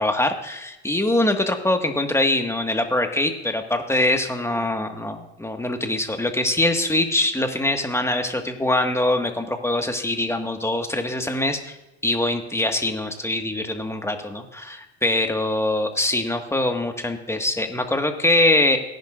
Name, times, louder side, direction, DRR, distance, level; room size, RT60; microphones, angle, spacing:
voice 1, 0.0-11.8 12.0-18.8, left 1 dB, 10° left, 5 dB, 1.8 m, -23 dB
18.5 x 11.0 x 2.6 m, 0.98 s
hypercardioid pair, 75°, 34 cm